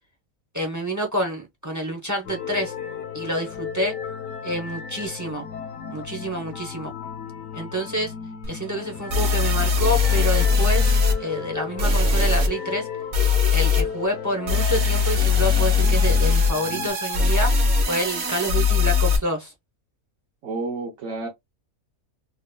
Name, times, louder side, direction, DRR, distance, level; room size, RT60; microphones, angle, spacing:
voice 1, 0.5-2.7 3.1-4.0 4.4-5.4 5.9-6.9 7.5-8.1 8.5-10.9 11.2-12.9 13.5-17.5 17.9-19.5, equal, 20° right, 0.5 m, -28 dB
sound 1, 2.3-16.9, left 7 dB, 70° left, 1.0 m, -35 dB
sound 2, 8.4-8.5 9.1-11.1 11.8-12.5 13.1-13.8 14.5-19.2, left 5 dB, 45° right, 0.9 m, -20 dB
voice 2, 20.4-21.3, right 3 dB, 75° right, 1.2 m, -30 dB
3.9 x 2.7 x 2.2 m
omnidirectional pair, 1.5 m